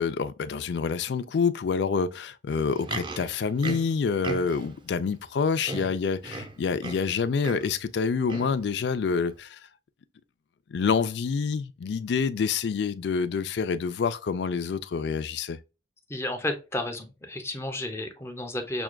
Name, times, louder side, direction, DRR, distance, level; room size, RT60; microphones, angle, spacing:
voice 1, 0.0-9.6 10.7-15.6, left 5 dB, 70° left, 0.4 m, -27 dB
Livestock farm animals working animals, 2.6-4.8 5.3-5.4 5.6-7.1 7.4-7.8 8.3-8.6 9.3-9.4, right 3 dB, 30° right, 0.5 m, -37 dB
voice 2, 16.1-18.8, left 1 dB, 15° left, 0.7 m, -32 dB
6.1 x 2.3 x 2.2 m
head